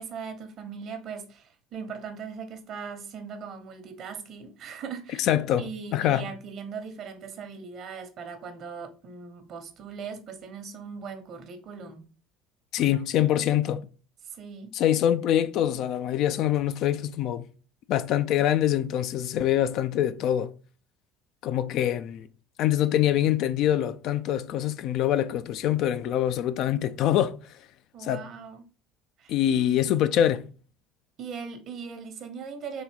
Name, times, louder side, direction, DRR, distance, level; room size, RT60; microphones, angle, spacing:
voice 1, 0.0-5.3 5.6-12.0 12.8-13.0 14.2-14.8 27.9-28.6 29.2-30.0 31.2-32.8, right 6 dB, 55° right, 1.0 m, -39 dB
voice 2, 5.2-5.6 5.9-6.2 12.7-13.8 14.7-17.4 17.9-20.5 21.4-22.3 22.6-27.4 28.0-28.2 29.3-30.5, left 11 dB, 60° left, 0.4 m, -24 dB
4.0 x 2.8 x 4.6 m
hypercardioid pair, 80°, 0 cm